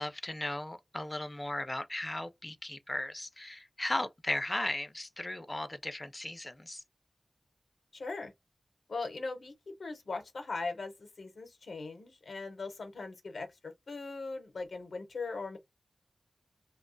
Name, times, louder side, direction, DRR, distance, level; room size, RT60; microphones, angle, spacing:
voice 1, 0.0-6.8, left 1 dB, 25° left, 0.3 m, -36 dB
voice 2, 7.9-8.3 8.9-15.6, left 3 dB, 90° left, 0.7 m, -40 dB
2.4 x 2.2 x 2.5 m
wide cardioid pair, 55°, 0 cm